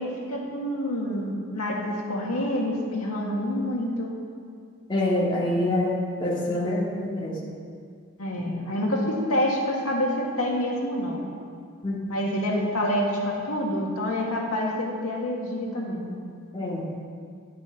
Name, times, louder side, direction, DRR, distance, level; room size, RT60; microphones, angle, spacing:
voice 1, 0.0-4.1 8.2-11.2 12.1-16.1, left 1 dB, 85° left, -2 dB, 1.8 m, -27 dB
voice 2, 4.9-7.4 8.4-8.5 11.8-12.2 16.5-16.9, left 1 dB, 20° left, -8 dB, 2.3 m, -26 dB
11.0 x 6.1 x 5.8 m, 2.2 s
head